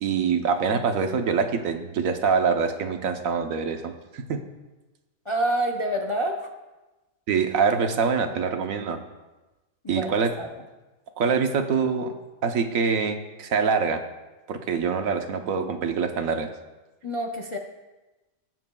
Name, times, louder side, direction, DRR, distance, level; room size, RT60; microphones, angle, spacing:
voice 1, 0.0-4.4 7.3-9.0 9.9-10.3 11.2-12.1 12.4-14.0 14.5-16.5, right 5 dB, 80° right, 6 dB, 1.2 m, -25 dB
voice 2, 5.3-6.4 9.8-10.5 15.6-15.7 17.0-17.6, right 1 dB, 35° left, 1 dB, 0.5 m, -27 dB
20.0 x 7.7 x 2.3 m, 1.1 s
omnidirectional pair, 1.4 m